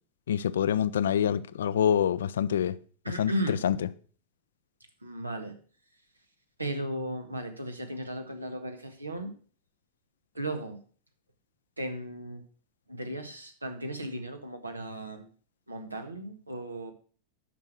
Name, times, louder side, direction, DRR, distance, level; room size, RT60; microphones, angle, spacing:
voice 1, 0.3-2.8 3.2-3.3 3.6-3.8, left 9 dB, 65° left, 0.5 m, -26 dB
voice 2, 3.0-3.6 5.0-5.6 6.6-9.3 10.3-10.8 11.8-12.4 12.9-15.3 15.7-16.9, right 1 dB, 85° right, 1.5 m, -35 dB
10.5 x 6.5 x 6.0 m
figure-of-eight pair, 90°, 0 cm